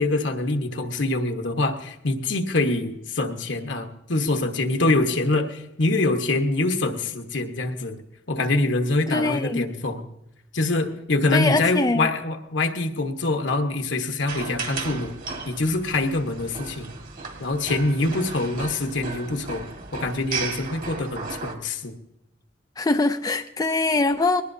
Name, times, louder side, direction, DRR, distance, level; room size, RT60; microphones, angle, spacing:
voice 1, 0.0-8.0 8.3-10.0 10.5-15.1 15.5-16.9 17.4-19.6 19.9-22.0, left 2 dB, 70° left, 5 dB, 1.3 m, -25 dB
voice 2, 9.1-9.7 11.3-12.1 22.8-24.4, left 3 dB, 20° left, 7 dB, 0.4 m, -23 dB
sound 1, 14.3-21.5, right 4 dB, 45° right, 1.8 m, -35 dB
21.5 x 18.5 x 2.7 m, 0.88 s
head